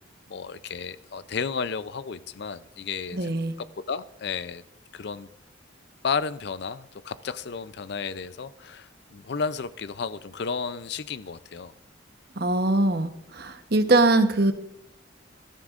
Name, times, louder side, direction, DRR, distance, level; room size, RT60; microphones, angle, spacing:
voice 1, 0.3-3.4 3.9-4.6 4.9-5.3 6.0-11.7, left 5 dB, 60° left, 15 dB, 0.5 m, -32 dB
voice 2, 3.1-3.5 12.4-14.5, right 2 dB, 55° right, 8 dB, 1.0 m, -22 dB
21.0 x 13.0 x 2.5 m, 0.75 s
head